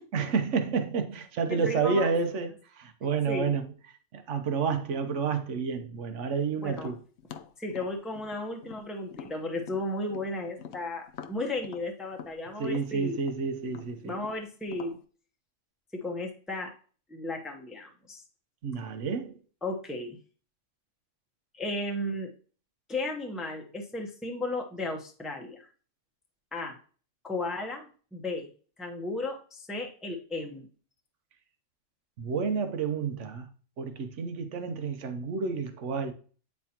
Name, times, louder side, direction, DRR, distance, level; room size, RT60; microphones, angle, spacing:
voice 1, 0.1-3.6 4.1-7.0 12.6-14.2 18.6-19.4 32.2-33.5 33.8-36.1, right 5 dB, 70° right, 1.2 m, -30 dB
voice 2, 1.5-2.1 3.3-3.5 6.6-6.9 7.6-13.2 14.0-15.0 15.9-16.7 17.1-18.2 19.6-20.2 21.5-22.3 22.9-25.7 26.5-26.8 27.2-28.5 28.8-30.7, left 2 dB, ahead, 0.8 m, -34 dB
Tap, 6.7-10.3 10.6-15.0, left 8 dB, 65° left, 0.8 m, -46 dB
9.3 x 4.3 x 2.9 m
omnidirectional pair, 1.3 m